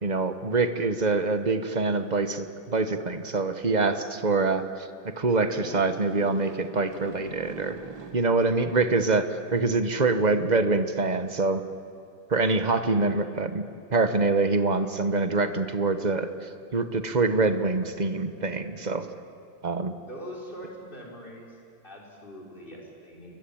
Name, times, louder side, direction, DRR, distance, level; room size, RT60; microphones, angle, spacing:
voice 1, 0.0-7.8 8.1-11.6 12.3-13.6 13.9-19.1 19.6-19.9, right 3 dB, 30° right, 9 dB, 0.9 m, -25 dB
sound 1, 5.6-9.6, right 4 dB, 50° right, 2.2 m, -44 dB
voice 2, 20.1-21.6 21.8-23.3, equal, 20° left, -2 dB, 5.4 m, -42 dB
27.5 x 23.5 x 8.8 m, 2.4 s
omnidirectional pair, 2.4 m